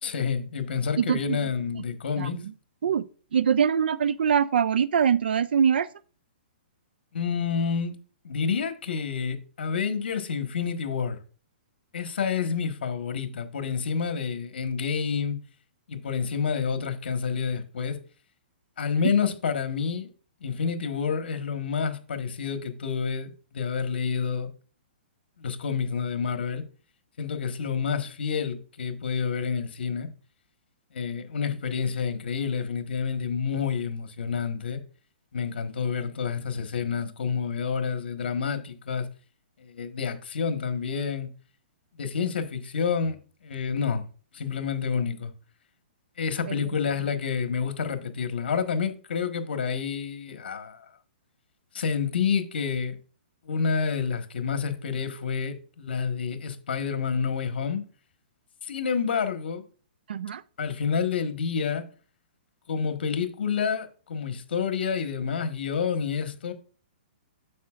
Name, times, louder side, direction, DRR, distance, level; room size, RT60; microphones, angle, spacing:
voice 1, 0.0-2.4 7.1-7.9 8.2-11.2 11.9-15.4 15.9-18.0 18.8-20.1 20.4-24.5 25.4-26.6 27.2-30.1 30.9-34.8 35.3-39.1 39.6-41.3 42.0-43.2 43.4-44.0 44.3-45.3 46.2-50.8 51.7-52.9 53.4-57.8 58.6-59.6 60.6-61.8 62.7-66.5, left 6 dB, 75° left, 1.4 m, -28 dB
voice 2, 1.0-1.5 2.2-2.5 2.8-5.9 19.0-19.1 46.5-46.6 60.1-60.4, right 7 dB, 75° right, 0.4 m, -24 dB
9.4 x 7.0 x 2.4 m
hypercardioid pair, 170°, 6 cm